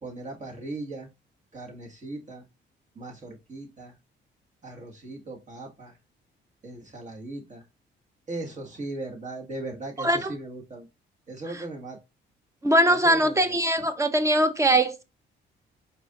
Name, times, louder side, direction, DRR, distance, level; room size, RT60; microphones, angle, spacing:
voice 1, 0.0-1.1 1.5-2.4 3.0-3.9 4.6-5.9 6.6-7.6 8.3-10.9 11.3-12.0 12.9-13.6, right 2 dB, 40° right, 1.7 m, -38 dB
voice 2, 10.0-10.3 11.5-11.6 12.6-15.0, right 1 dB, 15° right, 0.8 m, -22 dB
4.8 x 4.2 x 2.5 m
cardioid pair, 90°, 20 cm